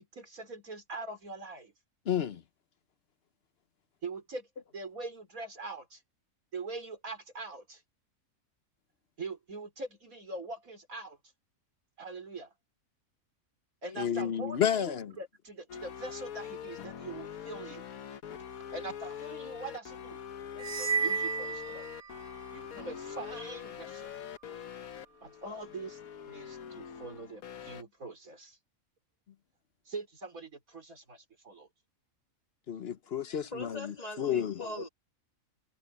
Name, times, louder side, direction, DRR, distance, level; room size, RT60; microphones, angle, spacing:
voice 1, 0.0-1.7 4.0-4.5 4.7-6.0 6.5-7.8 9.2-11.2 12.0-12.5 13.8-17.9 18.7-22.0 22.5-24.1 25.2-28.6 29.9-31.7, right 3 dB, 85° right, 4.8 m, -43 dB
voice 2, 2.1-2.4 14.0-15.1 32.7-33.8 34.2-34.7, left 9 dB, 55° left, 0.9 m, -31 dB
sound 1, 15.7-27.8, left 9 dB, 80° left, 1.5 m, -43 dB
sound 2, 20.6-22.5, right 5 dB, 50° right, 0.4 m, -33 dB
voice 3, 33.4-34.9, left 1 dB, 30° left, 3.0 m, -41 dB
omnidirectional pair, 1.4 m